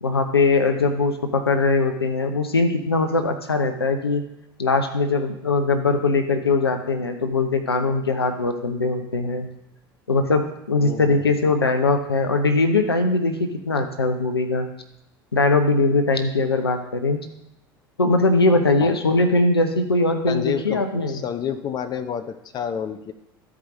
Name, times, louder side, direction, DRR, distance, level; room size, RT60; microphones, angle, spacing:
voice 1, 0.0-4.2 4.6-9.5 10.1-14.7 15.3-17.2 18.0-21.2, left 3 dB, 85° left, 6 dB, 0.7 m, -21 dB
voice 2, 10.8-11.4 18.8-19.0 20.3-23.1, left 8 dB, 35° left, 9 dB, 0.7 m, -29 dB
13.0 x 4.8 x 3.8 m, 0.83 s
figure-of-eight pair, 70°, 13 cm